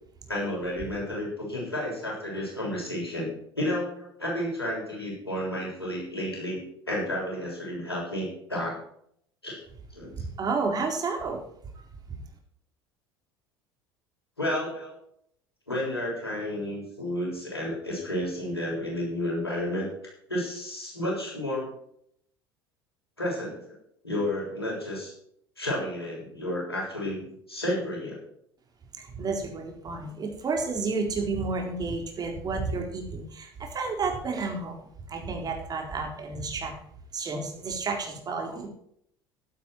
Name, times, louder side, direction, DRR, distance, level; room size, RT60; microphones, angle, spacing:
voice 1, 0.3-8.7 9.4-9.6 9.9-10.1 14.4-15.0 15.7-19.9 20.3-21.7 23.2-23.8 24.0-25.1 25.6-28.2, left 1 dB, 85° left, -4 dB, 7.2 m, -31 dB
voice 2, 10.1-11.4 11.7-11.8 28.9-36.7 37.1-38.7, right 4 dB, 30° right, 2 dB, 4.1 m, -31 dB
13.5 x 11.5 x 4.6 m, 0.68 s
figure-of-eight pair, 65°, 13 cm